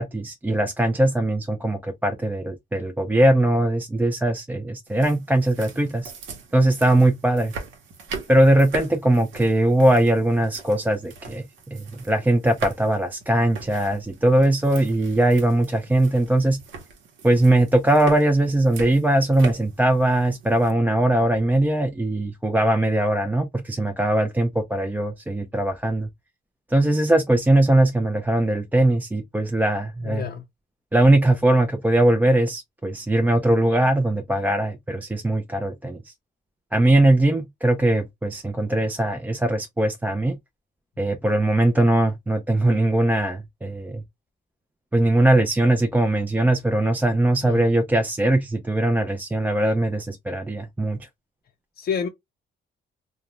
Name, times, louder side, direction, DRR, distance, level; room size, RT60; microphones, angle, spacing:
voice 1, 0.0-6.1 6.5-7.5 8.3-16.6 17.2-26.1 26.7-30.3 30.9-36.1 36.7-40.3 41.0-44.0 44.9-51.0, right 1 dB, 10° right, 0.4 m, -20 dB
sound 1, 4.9-20.7, right 4 dB, 75° right, 0.8 m, -40 dB
voice 2, 30.0-30.4 47.4-47.6 51.8-52.1, left 7 dB, 50° left, 0.5 m, -28 dB
2.4 x 2.1 x 2.9 m
cardioid pair, 90°, 20 cm